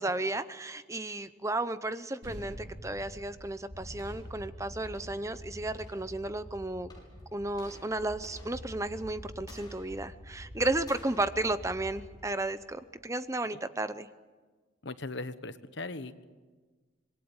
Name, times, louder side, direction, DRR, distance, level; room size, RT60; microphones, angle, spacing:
voice 1, 0.0-6.9 7.3-14.1, right 2 dB, 15° right, 12 dB, 0.7 m, -33 dB
sound 1, 2.2-7.0, equal, 60° right, 5.0 m, -49 dB
sound 2, 3.7-12.8, equal, 20° left, 6.6 m, -47 dB
voice 2, 14.8-16.1, left 2 dB, 60° left, 11 dB, 1.2 m, -39 dB
26.0 x 21.5 x 8.9 m, 1.4 s
head